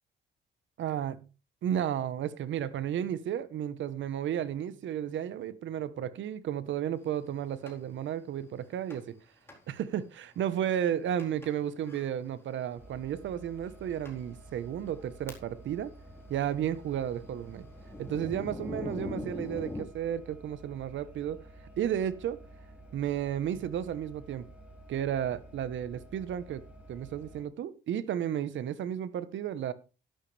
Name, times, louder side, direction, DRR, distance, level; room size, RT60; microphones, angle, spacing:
voice 1, 0.8-1.2 1.6-9.2 9.7-15.9 16.3-17.7 18.0-21.4 21.8-22.4 22.9-24.4 24.9-26.6 26.9-29.7, right 10 dB, 70° right, 1.2 m, -33 dB
Thunder, 7.7-7.8 8.9-9.2 9.5-9.6 10.2-10.3 11.2-11.5 11.8-12.1 13.0-13.1 13.7-13.8 14.0-14.2 14.8-15.7 16.0-19.8, left 1 dB, 10° left, 4.2 m, -42 dB
sound 1, 12.8-27.4, right 1 dB, 5° right, 6.0 m, -52 dB
11.5 x 11.5 x 3.4 m
cardioid pair, 90°, 20 cm